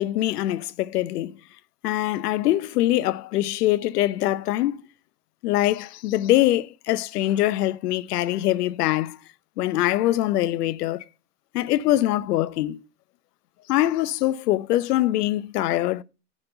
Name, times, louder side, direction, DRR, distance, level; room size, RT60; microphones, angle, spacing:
voice 1, 0.0-1.4 1.8-4.8 5.4-9.2 9.6-11.0 11.5-12.8 13.7-16.0, left 14 dB, 75° left, 0.8 m, -23 dB
9.8 x 4.3 x 6.8 m
hypercardioid pair, 115°, 47 cm